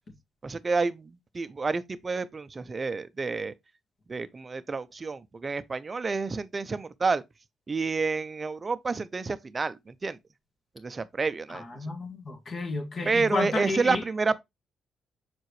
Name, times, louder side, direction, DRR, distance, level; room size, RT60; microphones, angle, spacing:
voice 1, 0.4-3.5 4.1-7.2 7.7-10.2 10.8-11.9 13.1-14.4, right 4 dB, 30° right, 0.6 m, -29 dB
voice 2, 11.5-14.0, left 3 dB, 40° left, 1.9 m, -32 dB
6.8 x 4.6 x 3.1 m
cardioid pair, 90°, 0 cm